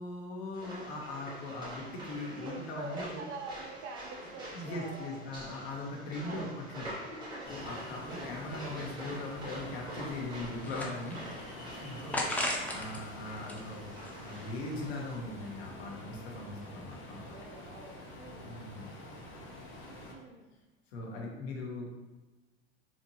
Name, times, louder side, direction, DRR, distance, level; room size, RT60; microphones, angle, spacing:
voice 1, 0.0-3.2 4.5-6.9 7.4-17.2 18.4-18.9 20.9-21.9, left 2 dB, 75° left, -1 dB, 1.1 m, -40 dB
sound 1, 0.5-15.2, right 1 dB, 15° right, 1.2 m, -46 dB
voice 2, 2.2-5.6 6.2-7.7 10.6-10.7 11.8-12.2 17.2-18.5 19.9-20.5, right 3 dB, 45° right, 2 dB, 0.6 m, -47 dB
Ocean, 7.5-20.1, left 1 dB, 35° left, 1.0 m, -47 dB
sound 2, 10.5-11.4 12.1-13.0 13.4-14.6, left 1 dB, 5° left, 0.3 m, -36 dB
4.2 x 2.4 x 2.8 m, 1.2 s
supercardioid pair, 115°, 32 cm